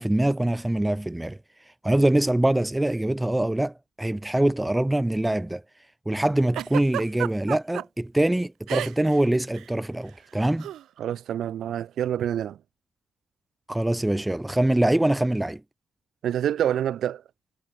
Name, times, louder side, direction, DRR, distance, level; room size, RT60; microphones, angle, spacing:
voice 1, 0.0-1.4 1.8-5.6 6.0-10.7 13.7-15.6, right 1 dB, 5° right, 1.5 m, -24 dB
Giggle, 6.5-7.8 8.7-9.2 9.4-9.7 10.6-10.8, right 12 dB, 85° right, 3.0 m, -31 dB
voice 2, 11.0-12.6 16.2-17.2, right 10 dB, 70° right, 6.0 m, -27 dB
cardioid pair, 145°, 0 cm